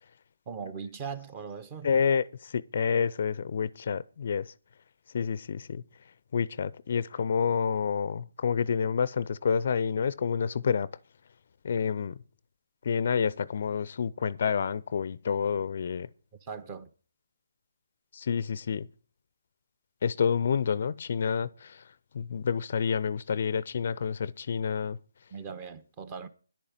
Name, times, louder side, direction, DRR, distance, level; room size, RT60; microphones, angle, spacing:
voice 1, 0.5-1.9 16.4-16.9 25.3-26.3, right 6 dB, 25° right, 1.2 m, -39 dB
voice 2, 1.8-4.5 5.1-5.8 6.3-10.9 11.6-12.2 12.8-16.1 18.1-18.9 20.0-25.0, left 6 dB, 50° left, 0.6 m, -29 dB
10.5 x 8.8 x 7.4 m
figure-of-eight pair, 150°, 0 cm